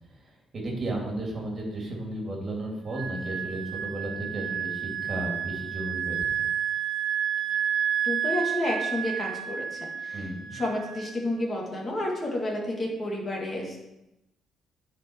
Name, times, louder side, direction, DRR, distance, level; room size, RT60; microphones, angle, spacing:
voice 1, 0.2-6.3 10.1-10.5, right 1 dB, 35° right, -1 dB, 2.6 m, -34 dB
Wind instrument woodwind instrument, 2.9-11.2, right 9 dB, 60° right, 1.7 m, -31 dB
voice 2, 8.0-10.3 10.5-13.8, left 1 dB, 30° left, -1 dB, 2.0 m, -30 dB
9.9 x 4.7 x 4.5 m, 0.91 s
cardioid pair, 130°, 0 cm